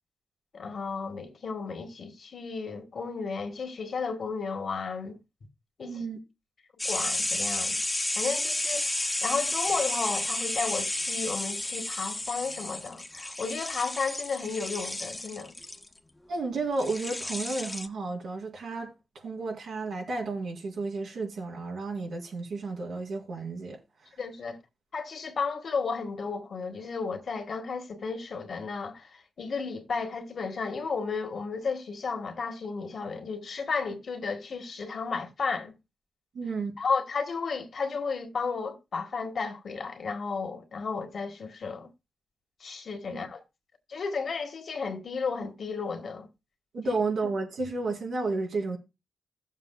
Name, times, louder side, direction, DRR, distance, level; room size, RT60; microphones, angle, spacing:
voice 1, 0.5-5.2 5.8-6.0 6.8-7.8 8.1-15.5 24.2-24.6 24.9-35.7 36.8-41.9 42.6-43.4 43.9-46.3, left 5 dB, 65° left, 1.7 m, -33 dB
voice 2, 5.9-6.2 16.3-23.8 36.3-36.7 43.0-43.2 46.7-48.8, right 3 dB, 85° right, 3.9 m, -32 dB
sound 1, 6.8-15.9 16.8-17.9, left 2 dB, 20° left, 1.0 m, -32 dB
16.5 x 7.4 x 2.3 m
cardioid pair, 85°, 0 cm